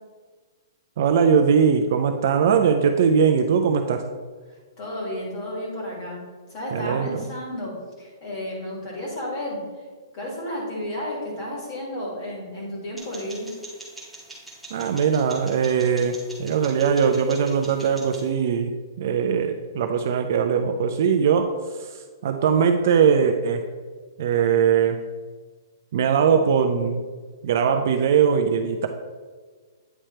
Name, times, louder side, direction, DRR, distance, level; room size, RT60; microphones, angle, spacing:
voice 1, 1.0-4.0 6.7-7.2 14.7-18.7 19.0-23.6 24.2-25.0 25.9-27.0 27.4-28.9, right 7 dB, 35° right, 5 dB, 0.3 m, -21 dB
voice 2, 4.8-6.2 6.5-7.7 8.0-9.6 10.1-13.5, left 1 dB, 20° left, -4 dB, 1.7 m, -32 dB
sound 1, 13.0-18.3, right 2 dB, ahead, 0.8 m, -43 dB
8.9 x 3.3 x 4.3 m, 1.5 s
hypercardioid pair, 180°, 2 cm